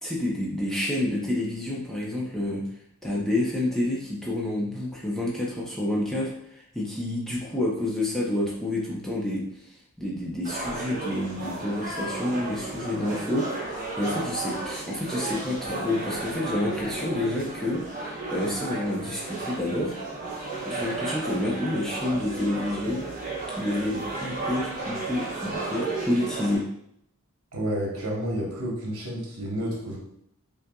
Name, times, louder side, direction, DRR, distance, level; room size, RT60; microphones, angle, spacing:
voice 1, 0.0-2.6 3.0-9.4 10.0-20.0 20.6-23.1 23.6-26.7, left 1 dB, ahead, -5 dB, 0.6 m, -29 dB
sound 1, 10.4-26.6, right 3 dB, 35° right, 1.0 m, -34 dB
voice 2, 27.5-30.0, equal, 75° right, -3 dB, 1.1 m, -30 dB
5.5 x 2.6 x 2.3 m, 0.73 s
head